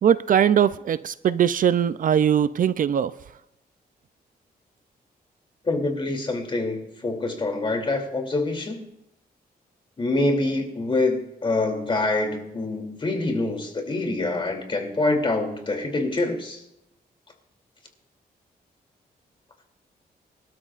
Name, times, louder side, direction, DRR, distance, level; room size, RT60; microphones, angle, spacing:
voice 1, 0.0-3.1, right 9 dB, 55° right, 0.4 m, -20 dB
voice 2, 5.6-8.8 10.0-16.6, left 2 dB, 30° left, 2.9 m, -25 dB
25.0 x 12.5 x 2.5 m
wide cardioid pair, 130°, 16 cm